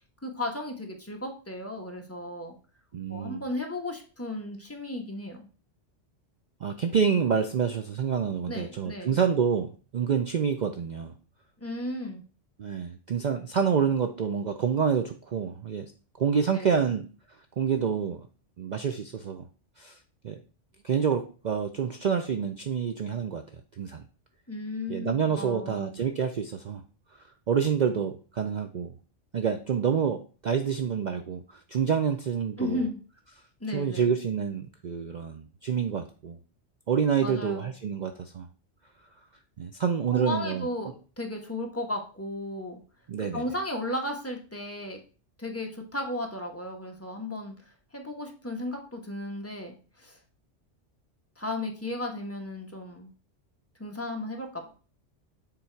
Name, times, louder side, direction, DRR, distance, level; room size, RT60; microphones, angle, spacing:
voice 1, 0.2-2.5 3.1-5.5 8.5-9.2 11.6-12.2 16.5-16.8 24.5-26.0 32.6-33.0 33.6-34.1 37.2-37.7 40.1-42.8 43.3-45.0 45.4-47.6 47.9-50.2 51.4-53.1 53.8-54.7, left 1 dB, 15° left, 2 dB, 1.1 m, -35 dB
voice 2, 2.9-3.4 6.6-11.1 12.6-15.9 16.2-17.1 17.6-18.3 18.6-19.4 19.8-20.0 20.2-20.4 20.8-23.4 23.8-24.1 24.9-26.8 27.5-28.9 29.3-32.9 33.7-36.4 36.9-38.5 39.6-40.7 43.1-43.4, right 7 dB, 55° right, 6 dB, 0.5 m, -27 dB
7.1 x 3.9 x 4.5 m, 0.38 s
omnidirectional pair, 1.2 m